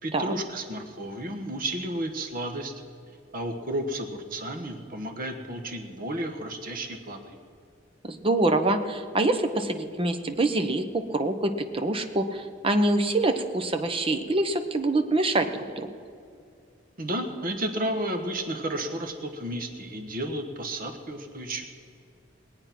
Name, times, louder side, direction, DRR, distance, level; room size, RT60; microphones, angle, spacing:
voice 1, 0.0-2.7 3.3-7.4 17.0-21.6, right 1 dB, 45° right, 6 dB, 1.2 m, -32 dB
voice 2, 8.0-15.9, right 2 dB, 30° right, 7 dB, 0.9 m, -25 dB
21.0 x 8.7 x 5.9 m, 2.4 s
head